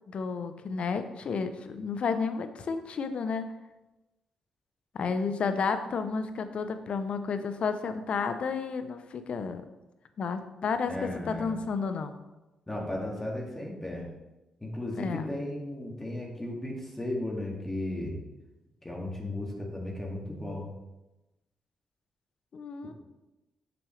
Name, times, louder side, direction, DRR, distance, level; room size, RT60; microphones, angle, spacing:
voice 1, 0.1-3.5 4.9-9.6 10.2-12.2 14.9-15.3 22.5-22.9, left 5 dB, 60° left, 9 dB, 0.7 m, -31 dB
voice 2, 10.8-11.5 12.7-14.0 14.6-18.2 18.8-20.7, left 1 dB, 15° left, -2 dB, 2.2 m, -35 dB
7.0 x 6.1 x 3.3 m, 1.0 s
supercardioid pair, 55°, 2 cm